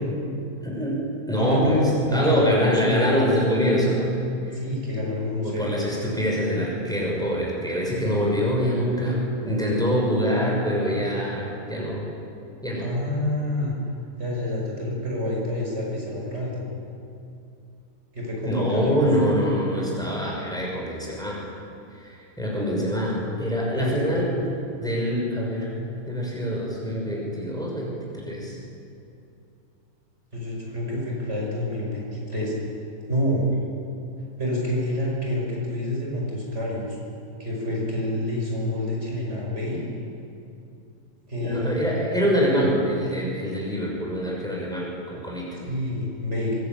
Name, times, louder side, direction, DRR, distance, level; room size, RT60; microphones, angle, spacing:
voice 1, 0.6-1.8 2.1-4.2 4.5-4.6 5.4-12.1 12.6-12.9 18.4-21.4 21.9-24.3 24.8-25.7 26.1-27.9 28.3-28.6 41.4-45.6, equal, ahead, -3 dB, 6.5 m, -25 dB
voice 2, 1.4-3.3 4.5-5.7 12.8-13.7 14.2-16.7 18.1-19.0 23.7-24.1 30.3-32.5 33.1-33.4 34.4-37.0 37.4-39.8 41.3-41.9 45.6-46.6, left 1 dB, 45° right, -3 dB, 6.0 m, -27 dB
24.5 x 20.5 x 9.2 m, 2.6 s
omnidirectional pair, 1.7 m